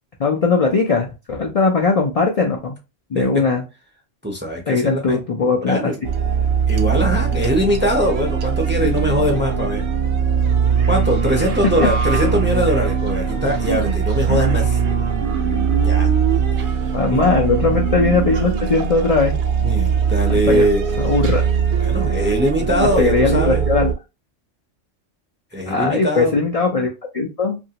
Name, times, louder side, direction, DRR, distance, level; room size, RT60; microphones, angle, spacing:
voice 1, 0.2-2.8 3.1-3.6 4.7-5.9 12.2-12.7 16.9-19.4 20.3-20.7 21.0-21.4 23.0-23.9 25.7-27.6, left 4 dB, 75° left, 1 dB, 0.3 m, -19 dB
voice 2, 4.2-5.2 5.7-6.0 6.7-9.8 10.9-14.8 15.8-16.1 17.1-17.2 19.6-20.8 21.8-23.7 25.5-26.3, equal, 15° right, 1 dB, 0.4 m, -21 dB
sound 1, 6.0-23.9, right 6 dB, 60° right, 0.6 m, -20 dB
2.8 x 2.6 x 2.8 m, 0.28 s
omnidirectional pair, 1.3 m